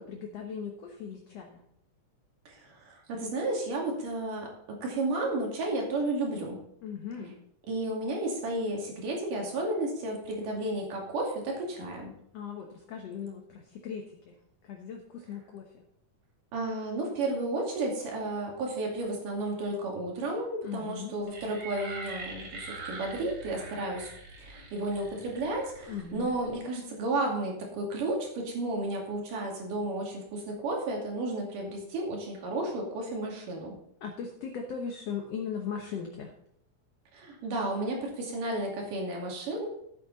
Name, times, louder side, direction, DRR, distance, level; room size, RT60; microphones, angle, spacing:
voice 1, 0.0-1.6 6.8-7.4 12.3-14.3 14.6-15.8 20.6-21.1 25.9-26.3 34.0-36.3, left 7 dB, 60° left, 2 dB, 2.0 m, -38 dB
voice 2, 2.5-6.6 7.7-12.1 16.5-24.1 24.4-33.8 37.1-39.7, right 2 dB, 85° right, -1 dB, 4.1 m, -32 dB
sound 1, 21.3-26.6, right 3 dB, 50° right, 3.0 m, -44 dB
13.5 x 8.5 x 4.0 m, 0.73 s
omnidirectional pair, 3.7 m